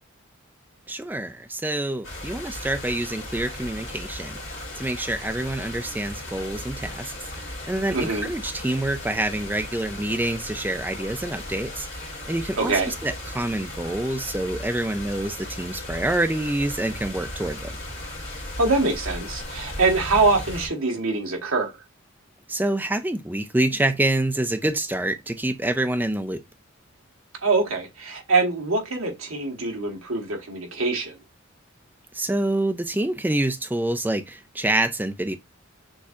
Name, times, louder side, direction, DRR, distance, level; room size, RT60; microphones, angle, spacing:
voice 1, 0.9-11.9 12.3-17.7 22.5-26.4 32.1-35.3, right 1 dB, 10° right, 0.3 m, -27 dB
sound 1, 2.0-20.7, left 1 dB, 60° left, 2.0 m, -36 dB
voice 2, 7.9-8.3 12.6-12.9 18.6-21.7 27.4-31.1, right 3 dB, 85° right, 1.3 m, -24 dB
6.3 x 2.7 x 2.4 m
head